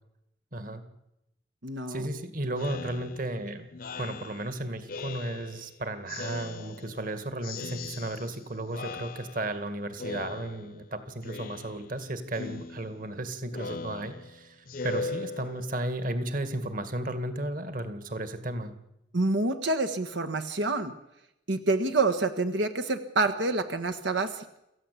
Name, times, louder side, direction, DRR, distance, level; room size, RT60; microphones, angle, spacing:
voice 1, 0.5-0.8 1.9-3.7 4.0-18.8, right 1 dB, 50° right, 10 dB, 2.1 m, -34 dB
voice 2, 1.6-2.0 19.1-20.9 21.5-24.6, right 3 dB, 85° right, 9 dB, 1.5 m, -27 dB
Speech synthesizer, 2.6-5.7 6.1-7.1 7.4-8.4 8.7-9.6 10.0-10.9 11.2-12.0 12.3-15.9, left 3 dB, 50° left, 0.8 m, -40 dB
27.5 x 14.5 x 8.5 m, 0.85 s
head